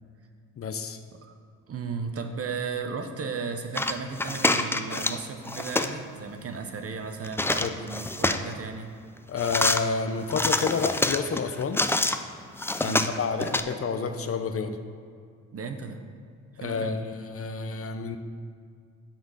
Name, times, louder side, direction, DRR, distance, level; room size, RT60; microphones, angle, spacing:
voice 1, 0.6-1.0 7.6-7.7 9.3-11.8 12.8-14.8 16.6-18.2, left 5 dB, 40° left, 8 dB, 0.7 m, -29 dB
voice 2, 1.7-8.9 12.8-13.5 15.5-16.0 16.5-17.1, right 5 dB, 40° right, 6 dB, 0.9 m, -35 dB
sound 1, 3.7-5.2 5.4-5.9 7.2-8.5 9.4-9.8 10.3-12.2 12.6-13.6, left 2 dB, 5° left, 0.4 m, -26 dB
7.3 x 5.2 x 6.3 m, 2.2 s
hypercardioid pair, 55°, 35 cm